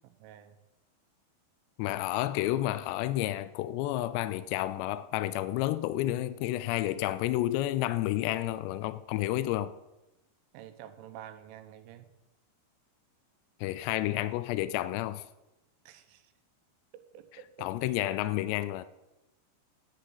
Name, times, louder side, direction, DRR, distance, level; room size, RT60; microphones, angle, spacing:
voice 1, 0.0-0.5 10.5-12.1 15.9-16.2 17.1-17.7, right 11 dB, 90° right, 3.4 m, -49 dB
voice 2, 1.8-9.7 13.6-15.2 17.3-18.8, left 15 dB, 85° left, 2.4 m, -30 dB
10.0 x 8.7 x 7.8 m
omnidirectional pair, 5.5 m